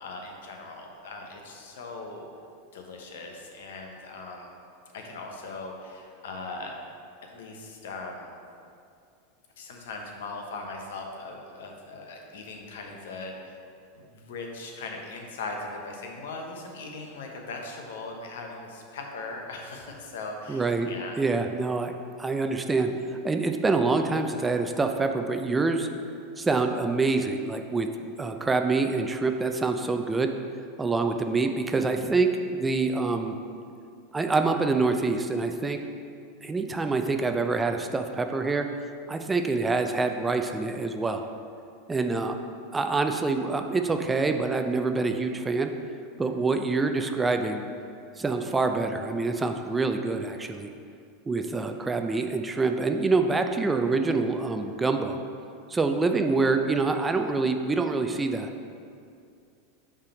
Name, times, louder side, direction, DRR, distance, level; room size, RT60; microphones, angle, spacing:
voice 1, 0.0-2.2 2.7-4.5 4.9-6.7 7.2-8.4 9.6-13.6 14.0-21.2, left 3 dB, 75° left, 2 dB, 0.8 m, -39 dB
voice 2, 20.5-20.9 21.2-21.9 22.2-22.9 23.2-25.9 26.4-27.9 28.2-30.3 30.8-33.4 34.1-35.8 36.4-38.7 39.1-41.3 41.9-42.4 42.7-45.7 46.2-47.6 48.2-50.7 51.3-55.2 55.7-58.5, right 3 dB, 15° right, 6 dB, 0.4 m, -26 dB
5.4 x 3.4 x 5.2 m, 2.4 s
hypercardioid pair, 100°, 0 cm